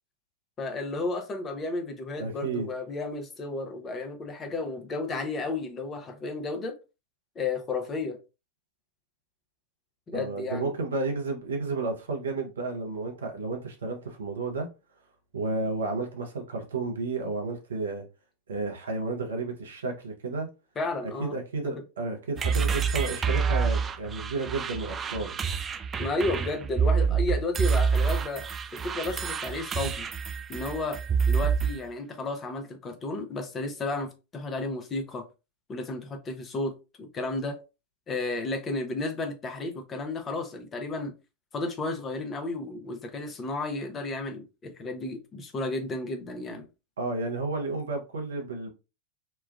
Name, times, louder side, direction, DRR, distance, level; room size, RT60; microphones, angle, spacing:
voice 1, 0.6-6.7 7.4-8.2 10.1-10.7 20.8-21.3 21.6-21.7 26.0-28.4 28.7-30.1 30.5-31.0 31.3-35.3 35.7-36.7 37.0-37.6 38.1-41.1 41.5-46.7, left 2 dB, 25° left, 0.6 m, -32 dB
voice 2, 2.2-2.7 10.1-14.7 15.3-18.1 18.5-20.5 21.2-25.4 47.0-48.7, right 3 dB, 75° right, 0.7 m, -32 dB
sound 1, 22.4-31.8, right 6 dB, 25° right, 0.4 m, -27 dB
3.1 x 2.2 x 2.3 m
figure-of-eight pair, 90°, 0 cm